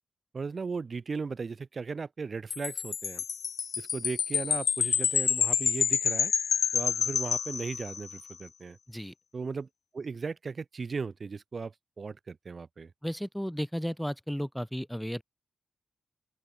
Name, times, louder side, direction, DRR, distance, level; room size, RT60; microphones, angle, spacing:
voice 1, 0.3-3.2 3.8-6.3 6.7-8.8 9.3-9.7 9.9-12.9, right 4 dB, 50° right, 3.5 m, -37 dB
Wind chime, 2.5-8.2, left 7 dB, 75° left, 2.4 m, -28 dB
voice 2, 13.0-15.2, equal, ahead, 6.9 m, -34 dB
open air
cardioid pair, 55°, 0 cm